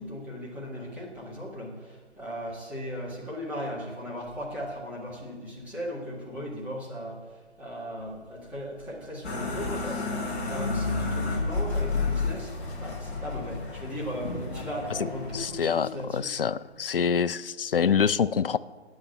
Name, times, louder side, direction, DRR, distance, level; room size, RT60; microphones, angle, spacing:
voice 1, 0.0-7.2 7.6-16.4, equal, 5° right, -6 dB, 1.7 m, -37 dB
sound 1, 8.0-8.4 9.6-10.3 11.9-12.8 14.2-15.2, left 2 dB, 35° left, 1.1 m, -41 dB
sound 2, 9.2-15.5, left 3 dB, 10° left, 0.8 m, -31 dB
voice 2, 15.3-18.6, left 7 dB, 55° left, 17 dB, 0.4 m, -26 dB
8.7 x 8.4 x 8.9 m, 1.4 s
figure-of-eight pair, 145°, 34 cm